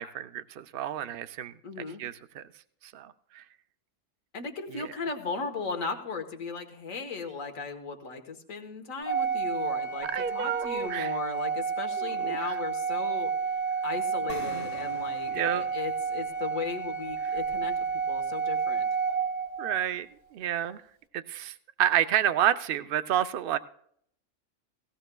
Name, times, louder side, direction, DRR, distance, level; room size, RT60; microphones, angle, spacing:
voice 1, 0.0-1.5 2.0-2.4 2.8-3.4 4.7-4.9 10.1-11.1 12.0-12.6 14.5-14.7 15.3-15.6 19.6-20.1 20.3-20.8 21.1-23.6, right 10 dB, 55° right, 12 dB, 0.6 m, -30 dB
voice 2, 1.6-2.0 4.3-13.6 13.8-18.9, left 4 dB, 85° left, 6 dB, 1.6 m, -37 dB
Organ, 9.1-19.9, right 5 dB, 30° left, 0.5 m, -31 dB
sound 1, 14.3-17.9, left 1 dB, 60° left, 2.3 m, -47 dB
18.0 x 16.0 x 2.3 m, 0.67 s
omnidirectional pair, 1.3 m